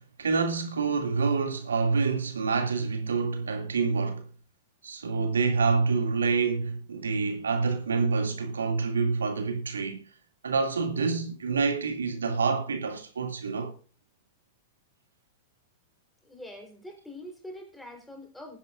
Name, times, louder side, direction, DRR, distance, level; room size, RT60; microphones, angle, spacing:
voice 1, 0.2-4.2 4.8-10.0 10.4-13.7, right 4 dB, 85° right, 2.5 m, -27 dB
voice 2, 16.2-18.6, left 1 dB, 5° left, 4.1 m, -44 dB
21.5 x 10.5 x 2.5 m
hypercardioid pair, 105°, 0 cm